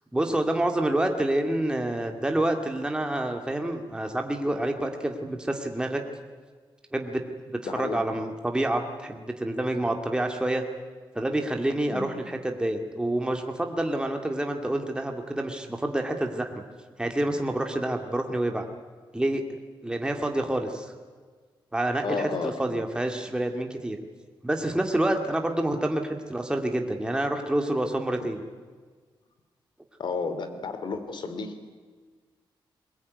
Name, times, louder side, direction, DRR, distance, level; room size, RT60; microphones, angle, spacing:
voice 1, 0.1-6.0 6.9-7.2 7.5-10.6 11.1-16.5 17.0-18.7 19.1-19.4 19.8-20.9 21.7-24.0 24.4-28.4, right 1 dB, 10° right, 4 dB, 2.2 m, -28 dB
voice 2, 7.6-8.0 11.9-12.2 22.0-22.8 30.0-31.6, left 4 dB, 60° left, 9 dB, 2.9 m, -32 dB
22.0 x 21.0 x 9.6 m, 1.5 s
wide cardioid pair, 120°, 9 cm